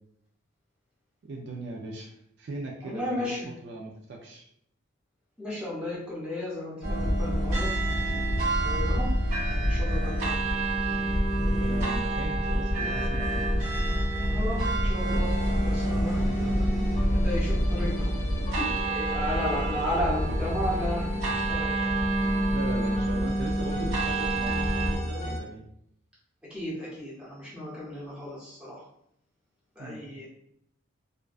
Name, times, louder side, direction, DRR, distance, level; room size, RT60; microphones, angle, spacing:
voice 1, 1.2-3.4 3.6-4.4 11.4-13.7 16.4-16.9 20.0-20.4 22.5-25.6 29.8-30.1, right 2 dB, 55° right, -1 dB, 0.3 m, -39 dB
voice 2, 2.8-3.5 5.4-7.7 8.6-9.1 9.5-10.5 14.3-15.3 15.6-16.6 17.1-18.1 18.6-21.9 26.5-28.8 29.8-30.2, left 1 dB, 5° right, -7 dB, 0.7 m, -34 dB
sound 1, 6.8-25.0, right 1 dB, 90° right, 1.0 m, -27 dB
sound 2, 15.2-25.4, left 1 dB, 30° left, 0.3 m, -38 dB
2.5 x 2.2 x 2.2 m, 0.74 s
head